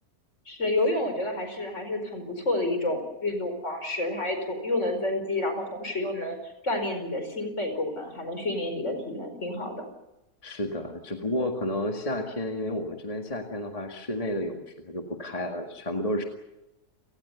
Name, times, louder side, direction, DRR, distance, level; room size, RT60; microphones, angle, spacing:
voice 1, 0.5-6.4 6.6-9.8, left 2 dB, 50° left, 6 dB, 5.2 m, -29 dB
voice 2, 10.4-16.2, left 1 dB, 25° left, 3 dB, 2.0 m, -31 dB
30.0 x 19.5 x 7.1 m, 0.97 s
omnidirectional pair, 1.6 m